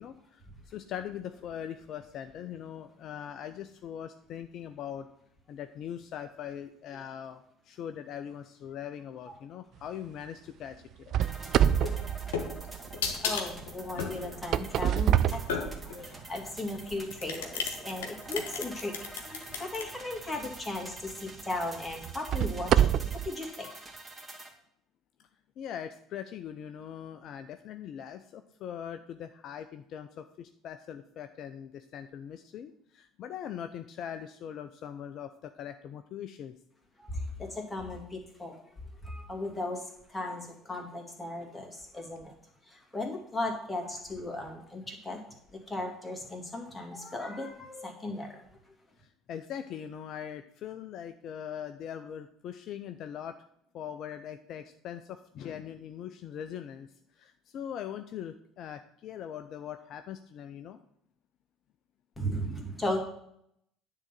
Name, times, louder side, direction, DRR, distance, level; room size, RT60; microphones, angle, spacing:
voice 1, 0.0-5.1 5.5-11.2 25.6-36.5 49.0-53.4 53.7-60.8, left 9 dB, 55° left, 9 dB, 0.5 m, -41 dB
sound 1, 11.1-13.1 14.2-16.2 16.8-17.0 17.6-17.7 20.4-20.5 21.1-21.2 22.0-23.3, right 10 dB, 55° right, 0.4 m, -27 dB
sound 2, 11.2-24.5, right 2 dB, 20° right, 2.1 m, -47 dB
sound 3, 11.8-16.0 16.8-19.8, left 6 dB, 75° left, 1.2 m, -35 dB
voice 2, 13.2-23.7 37.0-38.6 39.0-42.3 42.7-45.2 45.5-48.4 62.2-63.0, left 1 dB, 15° left, 1 dB, 2.5 m, -37 dB
9.8 x 3.9 x 7.3 m, 0.72 s
hypercardioid pair, 60°, 0 cm